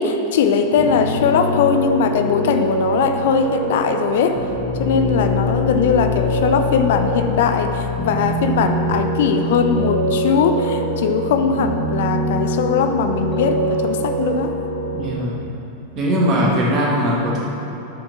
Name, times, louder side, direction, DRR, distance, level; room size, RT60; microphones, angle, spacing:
voice 1, 0.0-4.4 4.8-14.5, left 6 dB, 55° left, 6 dB, 0.7 m, -19 dB
Piano, 0.8-15.1, equal, 15° left, 1.9 m, -23 dB
voice 2, 14.9-15.4 16.0-17.4, equal, 35° right, -4 dB, 1.8 m, -19 dB
9.9 x 6.0 x 6.1 m, 3.0 s
figure-of-eight pair, 90°, 0 cm